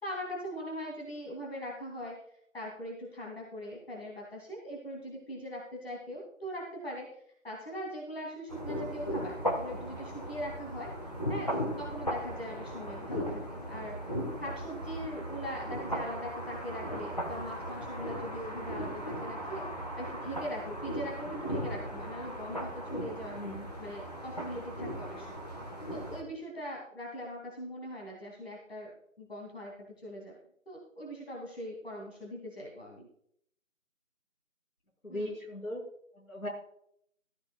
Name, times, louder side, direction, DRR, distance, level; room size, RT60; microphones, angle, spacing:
voice 1, 0.0-2.2 2.5-7.1 7.4-10.9 11.3-14.1 14.4-19.7 20.0-23.4 23.8-25.5 25.9-30.3 30.7-33.1 35.1-35.3, equal, 45° left, -2 dB, 2.7 m, -41 dB
sound 1, 8.5-26.2, equal, 30° left, 1.3 m, -37 dB
voice 2, 23.2-23.7 35.0-35.8 36.1-36.5, left 1 dB, 80° left, 0 dB, 5.8 m, -38 dB
14.0 x 14.0 x 2.3 m, 0.69 s
figure-of-eight pair, 170°, 41 cm